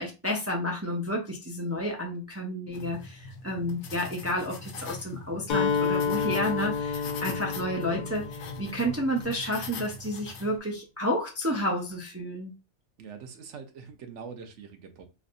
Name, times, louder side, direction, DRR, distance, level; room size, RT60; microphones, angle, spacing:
voice 1, 0.0-12.5, equal, 25° right, 0.3 m, -31 dB
sound 1, 2.7-10.6, left 3 dB, 80° left, 0.9 m, -42 dB
Acoustic guitar, 5.5-9.4, left 6 dB, 55° left, 0.6 m, -30 dB
voice 2, 13.0-15.1, right 6 dB, 80° right, 1.0 m, -43 dB
3.2 x 2.5 x 2.5 m
omnidirectional pair, 1.2 m